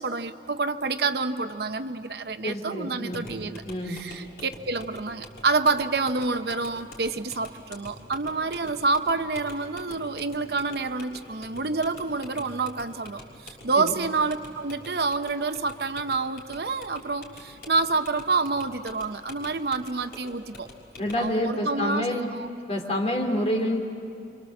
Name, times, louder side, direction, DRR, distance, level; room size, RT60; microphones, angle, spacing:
voice 1, 0.0-20.7 21.2-22.5, right 3 dB, 60° right, 9 dB, 0.8 m, -28 dB
voice 2, 2.4-3.2 3.7-4.0 13.8-13.9 21.0-22.3 22.7-23.8, left 1 dB, 35° left, 1 dB, 3.3 m, -27 dB
sound 1, 3.1-21.3, left 1 dB, 55° left, 6.1 m, -46 dB
28.0 x 25.0 x 7.8 m, 2.7 s
head